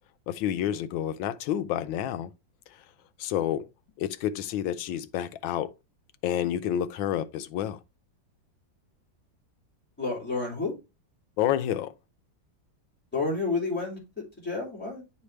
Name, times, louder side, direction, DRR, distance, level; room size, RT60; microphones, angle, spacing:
voice 1, 0.3-2.3 3.2-3.7 4.0-5.7 6.2-7.8 11.4-11.9, left 11 dB, 90° left, 1.4 m, -29 dB
voice 2, 10.0-10.7 13.1-14.0 14.4-15.0, left 3 dB, 5° left, 2.6 m, -30 dB
9.6 x 3.4 x 3.2 m
omnidirectional pair, 2.1 m